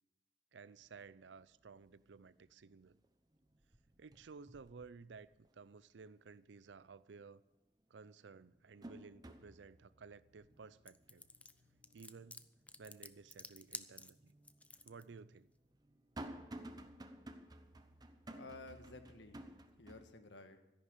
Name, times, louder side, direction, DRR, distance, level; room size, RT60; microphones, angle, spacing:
voice 1, 0.5-3.0 4.0-7.4 7.9-11.3 11.9-12.4 12.8-14.3 14.8-15.5, right 5 dB, 85° right, 0.5 m, -56 dB
sound 1, 0.8-0.9 1.4-1.9 2.3-3.1 3.3-5.6 6.0-6.1 7.5-7.6 8.1-13.3 13.7-13.8 14.7-20.0, right 1 dB, 20° right, 0.9 m, -54 dB
sound 2, 9.3-16.4, right 1 dB, 40° right, 1.6 m, -75 dB
sound 3, 10.9-15.0, left 3 dB, 10° left, 0.5 m, -51 dB
voice 2, 18.3-19.5 19.8-20.6, left 2 dB, 85° left, 1.5 m, -53 dB
13.0 x 11.0 x 6.8 m
head